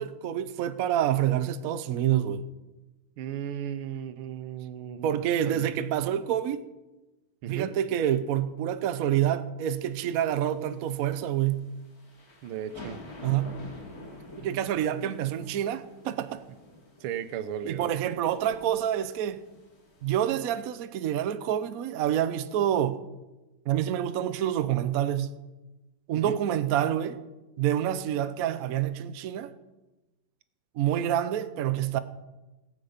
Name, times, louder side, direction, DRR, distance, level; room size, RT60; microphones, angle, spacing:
voice 1, 0.0-2.4 5.0-6.7 7.5-11.7 13.2-13.6 14.4-16.4 17.7-19.4 20.0-23.0 23.7-25.3 26.1-27.2 27.6-29.5 30.7-32.0, right 10 dB, 70° right, 0.8 m, -27 dB
voice 2, 3.2-5.1 5.4-5.7 7.4-7.7 12.4-13.0 17.0-17.9 26.1-26.4, right 9 dB, 85° right, 1.6 m, -35 dB
sound 1, 9.8-20.7, left 2 dB, 45° left, 2.9 m, -48 dB
17.0 x 8.3 x 5.1 m
omnidirectional pair, 2.3 m